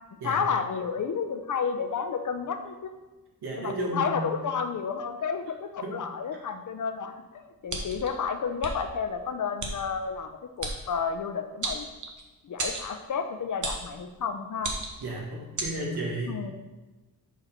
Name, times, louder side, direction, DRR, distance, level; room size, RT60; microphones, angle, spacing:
voice 1, 0.2-2.9 3.6-7.1 7.6-11.9 12.4-14.7 16.3-16.5, left 6 dB, 50° left, 8 dB, 0.6 m, -31 dB
voice 2, 3.4-4.4 5.8-6.0 15.0-16.4, right 2 dB, 80° right, -2 dB, 1.6 m, -33 dB
sound 1, 7.7-8.1 8.6-8.7 9.6-9.7 10.6-10.8 11.6-12.2 12.6-12.9 13.6-13.9 14.6-15.0 15.6-15.7, right 3 dB, 50° right, 1.0 m, -32 dB
6.1 x 5.0 x 4.4 m, 1.2 s
wide cardioid pair, 135°, 38 cm